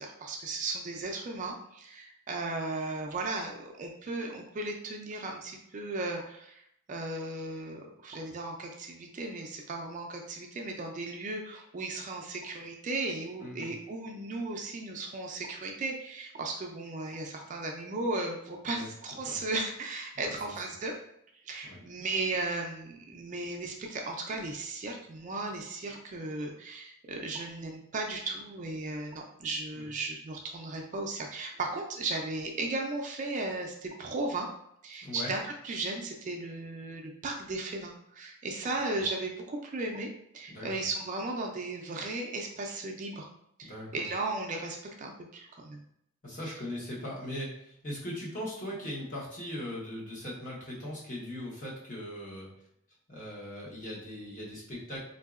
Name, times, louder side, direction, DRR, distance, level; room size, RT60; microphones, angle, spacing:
voice 1, 0.0-6.6 6.9-20.9 21.4-34.5 34.8-43.3 43.6-45.8, right 2 dB, 35° right, 2 dB, 0.4 m, -36 dB
voice 2, 13.4-13.7 18.7-18.9 19.3-19.4 20.1-20.4 21.6-21.8 29.7-29.8 35.0-35.3 40.5-40.7 43.6-43.9 46.2-52.5 53.1-55.0, left 1 dB, 40° left, -5 dB, 1.0 m, -39 dB
3.8 x 2.7 x 2.4 m, 0.74 s
head